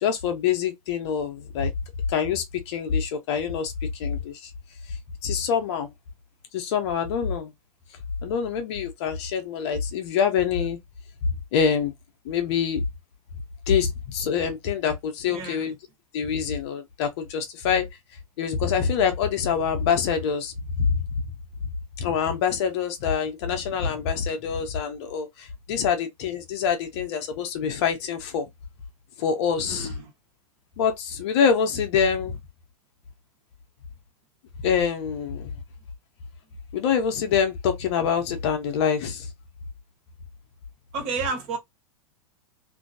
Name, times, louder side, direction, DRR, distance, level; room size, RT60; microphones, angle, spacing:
voice 1, 0.0-1.7 2.1-4.5 5.2-5.9 6.5-7.5 8.2-10.8 11.3-11.9 12.2-12.8 13.7-15.8 16.1-17.9 18.4-21.0 21.6-21.7 22.0-28.5 29.2-29.9 30.8-32.4 34.6-35.5 36.7-39.3, left 7 dB, 50° left, 0.9 m, -25 dB
voice 2, 15.2-15.7 29.7-30.1 40.9-41.6, right 4 dB, 40° right, 1.4 m, -31 dB
3.0 x 2.7 x 2.6 m
figure-of-eight pair, 100°, 18 cm